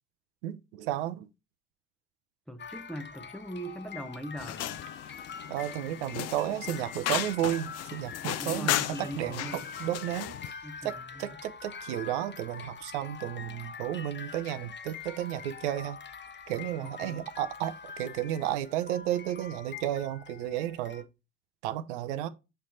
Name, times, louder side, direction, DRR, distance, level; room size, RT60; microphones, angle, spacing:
voice 1, 0.4-1.3 5.5-10.4 10.8-16.0 16.5-21.1 21.6-22.3, right 12 dB, 75° right, 0.7 m, -33 dB
voice 2, 2.5-4.8 8.4-9.6 10.6-11.4 16.8-17.2, equal, ahead, 0.8 m, -41 dB
sound 1, 2.6-21.0, left 6 dB, 30° left, 1.0 m, -45 dB
sound 2, 4.4-10.5, left 13 dB, 45° left, 0.6 m, -35 dB
7.1 x 3.3 x 4.3 m
hypercardioid pair, 60°, 35 cm